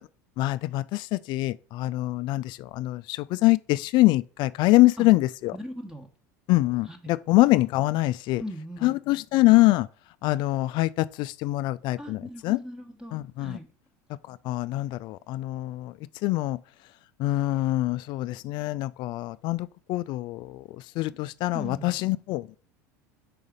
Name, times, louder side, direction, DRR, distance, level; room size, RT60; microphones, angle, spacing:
voice 1, 0.4-5.5 6.5-8.4 8.8-9.9 10.2-12.6 13.1-13.6 14.3-15.9 16.2-16.6 17.2-20.6 21.0-22.5, left 18 dB, 55° left, 0.4 m, -24 dB
voice 2, 5.6-6.1 6.9-7.1 8.4-9.0 12.0-13.7 21.5-22.0, equal, 5° right, 1.2 m, -39 dB
5.0 x 4.0 x 4.9 m
hypercardioid pair, 85°, 9 cm